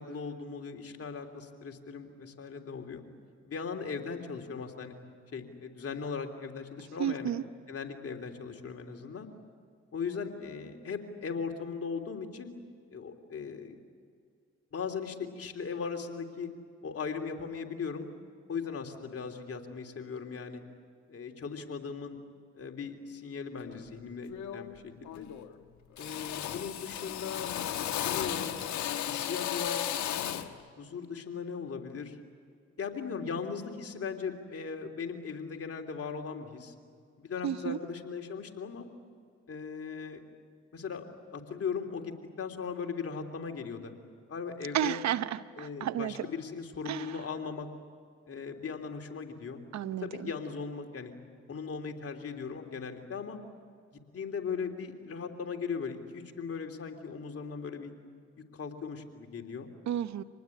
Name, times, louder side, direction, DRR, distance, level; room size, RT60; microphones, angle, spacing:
voice 1, 0.0-3.0 3.4-4.9 5.3-7.3 7.7-9.3 9.9-12.5 12.9-13.8 14.7-16.5 16.8-18.1 18.5-20.6 21.1-22.2 22.5-25.3 26.0-27.6 27.9-28.6 29.1-29.8 30.8-32.2 32.8-36.7 37.2-38.9 39.5-40.2 40.7-41.0 41.3-43.9 44.3-45.0 45.5-47.7 48.3-49.6 50.0-51.1 51.5-53.4 54.1-57.9 58.5-59.7, left 5 dB, 55° left, 3 dB, 3.3 m, -38 dB
voice 2, 7.0-7.4 37.4-37.8 44.7-46.3 46.8-47.2 49.7-50.3 59.9-60.2, right 10 dB, 70° right, 14 dB, 0.9 m, -32 dB
Drill, 23.6-23.9 24.3-24.8 25.0-25.6 26.0-30.6, left 11 dB, 80° left, 1.3 m, -35 dB
26.5 x 20.0 x 9.9 m, 2.2 s
supercardioid pair, 55°, 29 cm